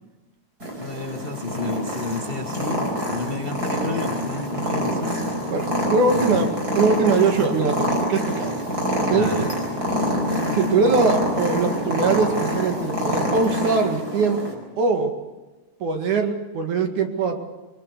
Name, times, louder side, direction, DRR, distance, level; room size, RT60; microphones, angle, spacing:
Purr, 0.6-14.5, equal, 30° right, 5.0 m, -26 dB
voice 1, 0.8-5.4 6.1-6.4 9.1-9.5, left 3 dB, 25° left, 4 dB, 1.4 m, -31 dB
voice 2, 5.5-8.5 9.1-9.3 10.5-15.1 15.8-17.4, right 4 dB, 70° right, 5 dB, 3.5 m, -22 dB
Bass guitar, 9.9-13.4, left 6 dB, 85° left, 0.6 m, -33 dB
23.5 x 21.0 x 6.7 m, 1.2 s
omnidirectional pair, 3.6 m